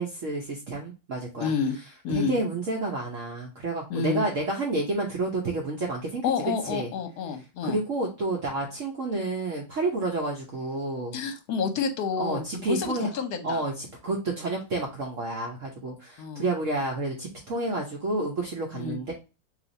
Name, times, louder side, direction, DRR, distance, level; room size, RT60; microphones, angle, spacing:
voice 1, 0.0-1.5 2.1-6.2 6.6-6.9 7.6-11.2 12.2-13.1 13.4-19.1, right 2 dB, 55° right, -1 dB, 1.0 m, -30 dB
voice 2, 1.4-1.8 2.0-2.4 3.9-4.3 6.2-7.8 11.1-13.6 16.2-16.5 18.7-19.0, left 5 dB, 65° left, 6 dB, 1.2 m, -29 dB
3.3 x 2.9 x 3.8 m, 0.30 s
omnidirectional pair, 2.0 m